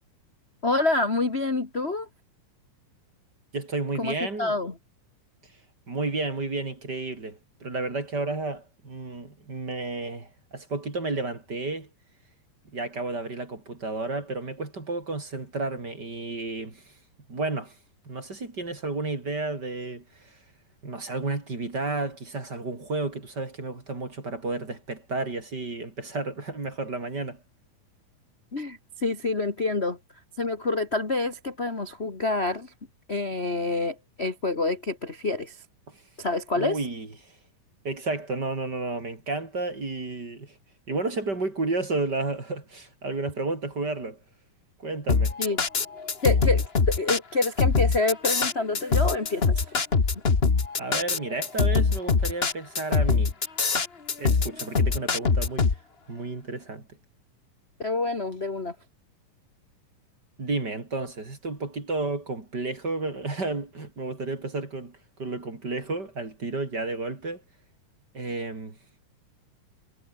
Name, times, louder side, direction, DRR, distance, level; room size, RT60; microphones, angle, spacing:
voice 1, 0.6-2.1 4.0-4.7 28.5-30.0 30.4-32.7 33.1-35.6 36.2-36.8 45.4-45.6 46.2-49.6 57.8-58.7, left 3 dB, 20° left, 1.9 m, -27 dB
voice 2, 3.5-4.6 5.9-11.9 12.7-16.9 17.3-17.7 18.1-20.4 20.8-27.4 35.9-36.0 36.5-37.4 37.8-40.5 40.9-44.2 44.8-45.4 50.8-53.3 54.2-55.7 56.1-56.9 60.4-67.4 68.1-68.8, right 3 dB, 30° right, 4.2 m, -32 dB
sound 1, 45.1-55.8, left 4 dB, 65° left, 0.6 m, -23 dB
omnidirectional pair, 4.0 m